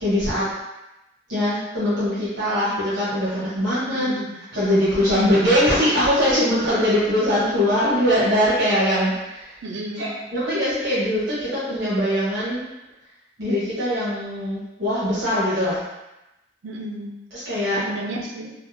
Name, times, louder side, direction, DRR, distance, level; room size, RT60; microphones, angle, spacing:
voice 1, 0.0-0.5 1.3-4.1 4.5-9.5 9.9-12.6 13.4-15.8 17.3-17.8, equal, 65° right, -11 dB, 1.0 m, -21 dB
voice 2, 3.9-4.3 9.6-10.1 16.6-17.1 17.7-18.5, right 1 dB, 85° right, 1 dB, 0.5 m, -32 dB
3.6 x 2.1 x 2.7 m, 0.97 s
head